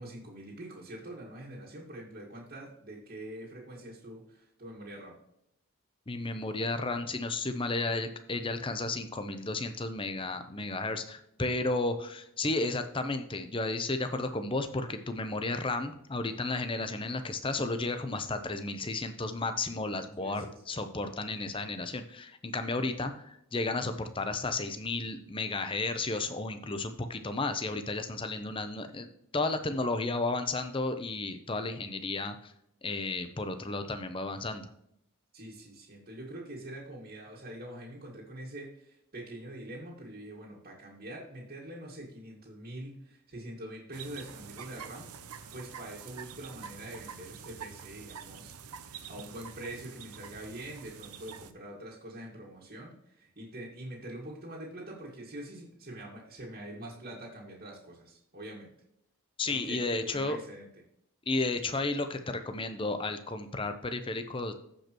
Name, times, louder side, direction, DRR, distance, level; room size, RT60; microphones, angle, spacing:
voice 1, 0.0-5.2 20.2-20.5 35.3-48.6 48.9-58.7 59.4-60.7, right 1 dB, 40° right, -5 dB, 1.9 m, -44 dB
voice 2, 6.1-32.5 32.8-34.7 59.4-60.4 61.3-64.5, left 2 dB, 25° left, 8 dB, 0.7 m, -33 dB
sound 1, 43.9-51.5, right 7 dB, 85° right, 0.8 m, -46 dB
15.0 x 5.2 x 3.0 m, 0.76 s
head